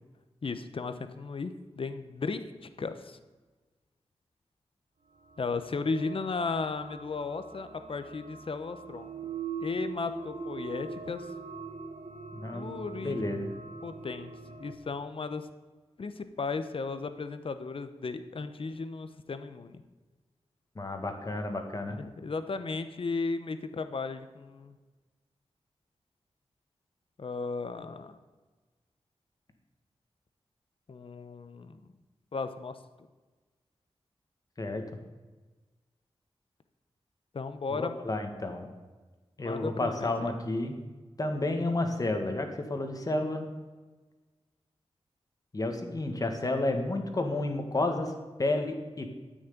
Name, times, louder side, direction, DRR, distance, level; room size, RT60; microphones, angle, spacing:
voice 1, 0.4-3.2 5.4-9.1 9.6-11.3 12.5-13.2 13.8-14.3 14.6-15.5 16.0-19.8 21.9-24.8 27.2-28.2 30.9-31.9 32.3-32.8 37.3-37.9 39.4-40.3, left 4 dB, 55° left, 10 dB, 1.0 m, -35 dB
sound 1, 5.3-14.7, right 4 dB, 90° right, 1.4 m, -42 dB
voice 2, 12.3-12.7 13.0-13.5 20.8-22.0 34.6-34.8 37.7-38.7 39.4-40.8 41.2-43.5 45.5-48.1 48.4-49.1, left 2 dB, 35° left, 5 dB, 1.8 m, -31 dB
13.0 x 6.4 x 9.6 m, 1.3 s
wide cardioid pair, 125°, 11 cm